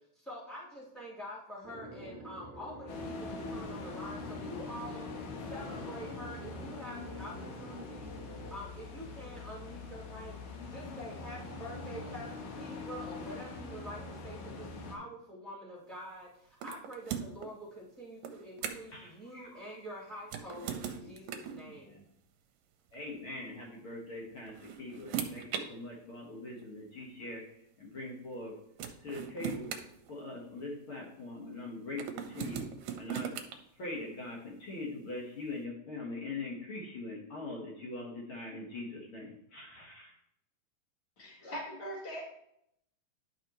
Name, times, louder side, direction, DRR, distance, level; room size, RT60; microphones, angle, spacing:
voice 1, 0.1-5.1 5.5-8.1 8.5-10.3 10.6-22.0, equal, ahead, -9 dB, 3.0 m, -46 dB
sound 1, 1.6-8.5, right 1 dB, 25° right, 2.2 m, -48 dB
sound 2, 2.9-15.0, left 3 dB, 85° left, 3.1 m, -43 dB
sound 3, 16.6-17.5 18.2-19.0 20.2-21.6 22.9-23.1 24.2-25.7 26.6-26.7 28.3-28.4 28.8-30.6 32.0-33.6, right 8 dB, 75° right, 2.1 m, -39 dB
voice 2, 18.9-19.8 20.1-20.2 20.9-21.1 21.6-22.0 22.9-27.5 27.8-28.5 29.0-29.7 30.1-32.7 33.0-33.4 33.7-40.1, left 2 dB, 50° left, -3 dB, 1.6 m, -42 dB
voice 3, 41.2-42.2, equal, 30° left, -3 dB, 2.0 m, -41 dB
11.0 x 5.7 x 3.1 m, 0.75 s
omnidirectional pair, 4.3 m